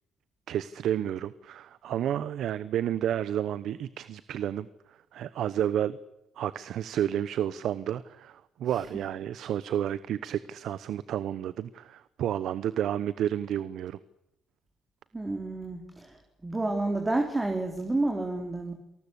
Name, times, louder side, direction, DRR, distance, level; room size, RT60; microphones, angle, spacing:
voice 1, 0.5-6.0 6.4-14.0, right 10 dB, 75° right, 16 dB, 0.9 m, -31 dB
voice 2, 15.1-18.7, right 2 dB, 20° right, 3 dB, 3.8 m, -30 dB
28.0 x 19.5 x 8.3 m, 0.84 s
cardioid pair, 90°, 0 cm